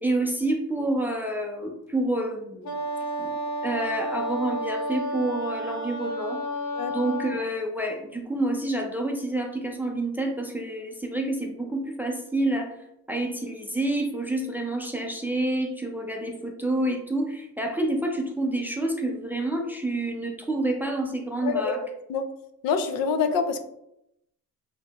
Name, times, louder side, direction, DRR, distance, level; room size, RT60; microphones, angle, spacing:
voice 1, 0.0-2.8 3.2-3.3 3.6-6.4 6.9-12.7 13.1-21.8, right 1 dB, 5° right, 2 dB, 0.3 m, -28 dB
Wind instrument woodwind instrument, 2.6-7.5, equal, 55° left, 0.9 m, -31 dB
voice 2, 21.4-21.7 22.1-22.3 22.6-23.6, left 5 dB, 85° left, 9 dB, 0.6 m, -25 dB
6.1 x 2.7 x 2.3 m, 0.80 s
cardioid pair, 155°, 34 cm